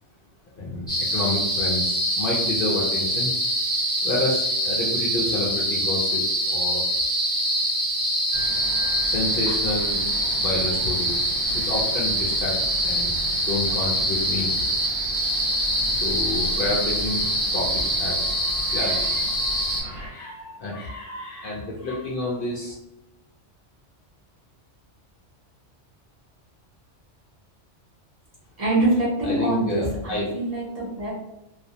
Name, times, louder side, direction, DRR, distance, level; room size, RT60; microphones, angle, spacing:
voice 1, 0.6-3.3 4.0-6.8 9.0-10.0 10.4-12.6 12.8-14.7 15.9-17.2 17.5-19.4 19.7-22.7 29.2-30.3, left 2 dB, 60° left, -4 dB, 0.6 m, -29 dB
sound 1, 0.9-19.8, equal, 5° left, 0.7 m, -24 dB
sound 2, 8.3-20.1, equal, 80° right, 0.9 m, -38 dB
voice 2, 28.6-31.1, right 2 dB, 40° right, -7 dB, 0.7 m, -24 dB
2.4 x 2.0 x 2.6 m, 0.88 s
omnidirectional pair, 1.2 m